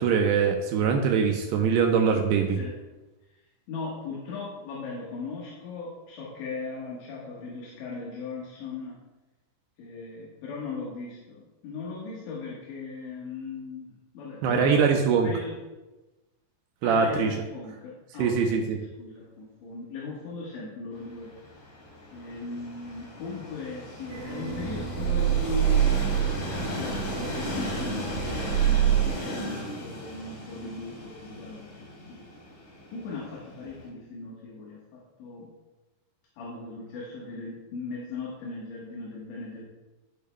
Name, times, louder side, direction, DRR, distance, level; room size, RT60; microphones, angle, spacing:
voice 1, 0.0-2.6 14.4-15.3 16.8-17.4 18.2-18.8, right 6 dB, 85° right, 3 dB, 2.5 m, -23 dB
voice 2, 3.7-9.0 9.8-15.6 16.8-21.3 22.1-32.3 32.9-35.5 36.4-39.6, left 3 dB, 75° left, -5 dB, 3.6 m, -38 dB
Train, 20.9-33.9, left 1 dB, 45° left, 3.8 m, -37 dB
sound 1, 24.1-29.1, right 10 dB, 60° right, 2.2 m, -26 dB
13.5 x 6.7 x 2.2 m, 1.1 s
omnidirectional pair, 5.3 m